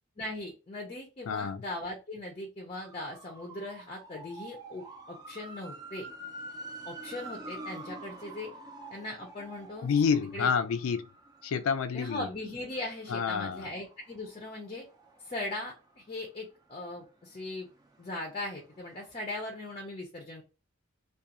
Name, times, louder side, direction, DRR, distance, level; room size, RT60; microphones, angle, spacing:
voice 1, 0.2-6.1 6.8-8.5 8.9-9.9 10.3-10.5 11.9-14.9 15.2-17.7 18.0-20.4, left 2 dB, 30° left, 0.5 m, -39 dB
voice 2, 1.3-1.6 9.8-11.1 11.4-12.3 13.1-13.7, left 6 dB, 90° left, 0.4 m, -28 dB
sound 1, 2.7-16.5 16.9-19.4 19.7-19.8, right 2 dB, 20° right, 0.5 m, -48 dB
2.4 x 2.3 x 2.8 m
head